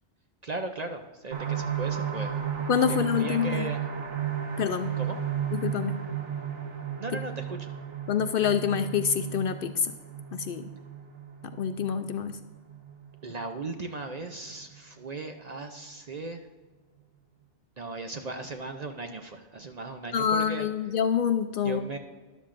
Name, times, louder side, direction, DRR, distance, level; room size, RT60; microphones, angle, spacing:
voice 1, 0.4-2.4 2.9-3.8 5.0-5.2 7.0-7.7 13.2-16.4 17.8-20.7 21.6-22.0, right 3 dB, 45° right, 5 dB, 0.6 m, -37 dB
sound 1, 1.3-14.8 15.2-15.3 15.7-15.8, right 8 dB, 85° right, 1.3 m, -34 dB
voice 2, 2.7-3.7 4.6-4.9 5.5-6.0 8.1-9.9 10.3-10.7 11.6-12.4 20.1-21.8, left 8 dB, 60° left, 9 dB, 0.6 m, -26 dB
13.0 x 11.5 x 2.5 m, 1.3 s
omnidirectional pair, 1.2 m